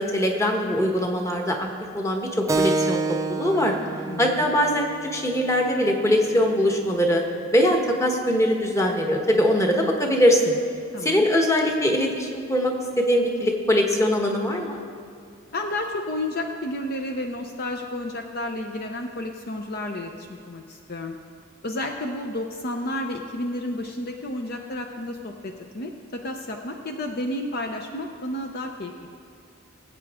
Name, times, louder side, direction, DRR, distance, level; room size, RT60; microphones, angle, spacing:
voice 1, 0.0-1.7 1.9-3.7 4.2-7.2 7.5-10.6 11.0-14.8, equal, 15° left, 1 dB, 1.2 m, -22 dB
Keyboard (musical), 2.5-7.6, right 3 dB, 15° right, 0.3 m, -30 dB
voice 2, 4.0-4.4 10.9-11.3 15.5-21.2 21.6-29.1, left 1 dB, 50° left, 3 dB, 0.7 m, -31 dB
20.0 x 8.3 x 3.6 m, 2.4 s
head